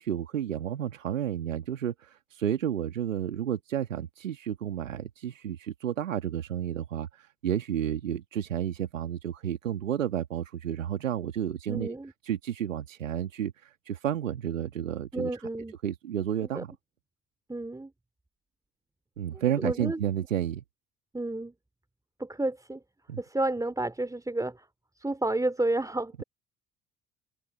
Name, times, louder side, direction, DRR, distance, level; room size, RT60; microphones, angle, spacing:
voice 1, 0.0-11.9 12.2-15.4 15.8-16.7 19.2-20.6 23.1-23.2, right 10 dB, 85° right, 1.8 m, -31 dB
voice 2, 11.7-12.1 15.1-15.7 16.5-16.6 17.5-17.9 19.3-20.0 21.1-21.5 22.2-22.8 23.2-24.7 25.0-26.2, right 2 dB, 10° right, 3.0 m, -31 dB
figure-of-eight pair, 55°, 38 cm